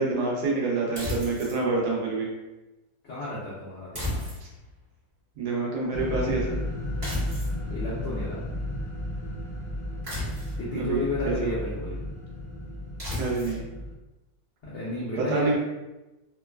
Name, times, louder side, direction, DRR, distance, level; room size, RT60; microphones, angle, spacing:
voice 1, 0.0-2.3 5.4-6.6 10.7-11.5 13.2-13.6 15.2-15.6, right 3 dB, 70° right, -3 dB, 1.0 m, -27 dB
sound 1, 1.0-1.6 4.0-4.7 7.0-7.6 10.0-10.7 13.0-13.6, left 1 dB, 30° right, 1.0 m, -33 dB
voice 2, 3.0-4.2 7.7-8.4 10.6-12.0 14.6-15.5, left 2 dB, 75° left, -8 dB, 0.6 m, -32 dB
sound 2, 5.9-13.9, left 1 dB, 35° left, 0.4 m, -33 dB
3.0 x 2.1 x 2.2 m, 1.0 s
omnidirectional pair, 1.9 m